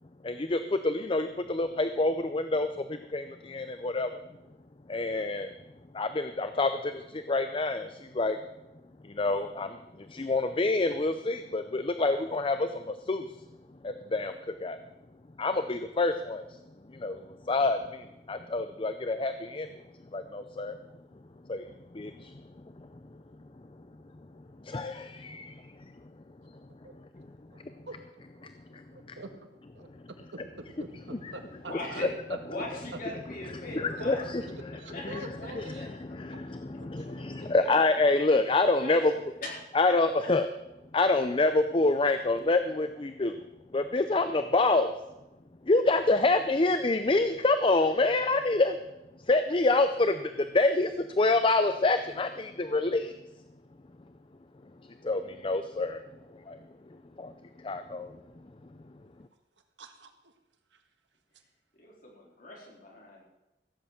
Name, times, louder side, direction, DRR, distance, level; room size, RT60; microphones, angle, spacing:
voice 1, 0.2-4.2 4.9-5.5 5.9-8.4 9.0-13.3 13.8-14.4 14.6-14.8 15.4-16.4 16.9-19.7 20.1-20.8 21.5-21.6 21.9-22.3 22.8-22.9 24.6-25.7 27.2-27.3 28.4-29.2 31.2-31.3 33.6-39.1 39.7-40.5 40.9-43.4 43.7-44.9 45.7-48.8 49.3-53.2 55.0-56.0 56.3-56.6 57.2-57.3 57.6-58.2, left 2 dB, 30° left, 9 dB, 0.5 m, -27 dB
voice 2, 28.4-32.7 33.8-34.0 34.4-35.9 36.3-36.4 36.8-37.3 38.1-38.5 59.8-60.1, right 2 dB, 85° right, 6 dB, 1.6 m, -46 dB
voice 3, 31.7-32.2 32.4-34.2 34.9-36.1 37.4-37.7 38.7-39.0 39.4-39.6 40.2-40.3 61.7-63.2, left 2 dB, 50° left, -2 dB, 4.0 m, -41 dB
15.5 x 7.9 x 7.3 m, 0.96 s
head